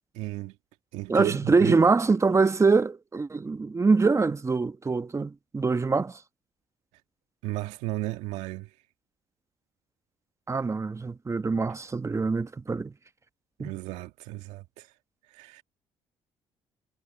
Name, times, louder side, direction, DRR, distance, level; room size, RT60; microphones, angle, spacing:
voice 1, 0.1-0.6 0.9-1.9 7.4-8.7 13.6-14.9 15.3-15.6, right 17 dB, 85° right, 1.9 m, -34 dB
voice 2, 1.1-6.2 10.5-12.9 13.6-13.7, right 4 dB, 25° right, 1.2 m, -24 dB
supercardioid pair, 65°, 12 cm